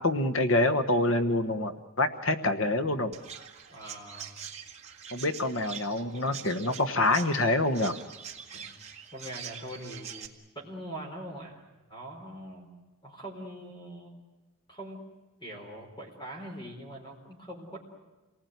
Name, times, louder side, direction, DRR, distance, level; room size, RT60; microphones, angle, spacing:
voice 1, 0.0-1.7 2.0-3.2 5.1-8.0, left 2 dB, 65° left, 9 dB, 1.2 m, -26 dB
Chirp tweet, 3.1-10.3, right 7 dB, 30° right, 1.8 m, -44 dB
voice 2, 3.7-4.4 8.5-8.8 9.1-10.3 10.5-11.6 11.9-12.7 13.0-14.2 14.7-15.0 15.4-17.8, right 1 dB, 20° left, 1 dB, 4.3 m, -42 dB
27.5 x 19.5 x 9.4 m, 1.2 s
head